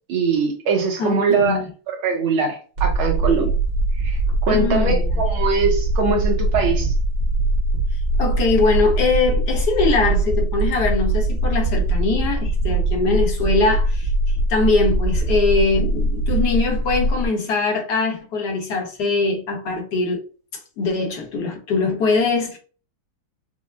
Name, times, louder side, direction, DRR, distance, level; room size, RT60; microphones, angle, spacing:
voice 1, 0.1-3.5 3.9-6.9, right 4 dB, 80° right, 1.8 m, -22 dB
voice 2, 1.0-1.7 4.5-5.1 8.2-14.1 14.5-20.2 20.8-22.6, left 4 dB, 60° left, 1.5 m, -22 dB
sound 1, 2.8-17.3, right 2 dB, 60° right, 2.0 m, -21 dB
5.5 x 2.1 x 2.4 m
omnidirectional pair, 2.3 m